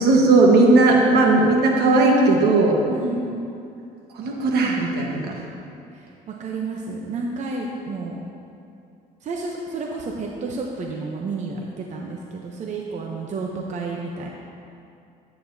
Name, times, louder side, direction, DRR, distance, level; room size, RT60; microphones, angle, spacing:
voice 1, 0.0-2.8 4.2-5.3, right 2 dB, 70° right, 0 dB, 1.3 m, -17 dB
voice 2, 2.9-3.5 5.9-8.2 9.2-14.3, right 3 dB, 45° right, 0 dB, 0.7 m, -31 dB
9.9 x 8.8 x 2.7 m, 2.5 s
cardioid pair, 110°, 17 cm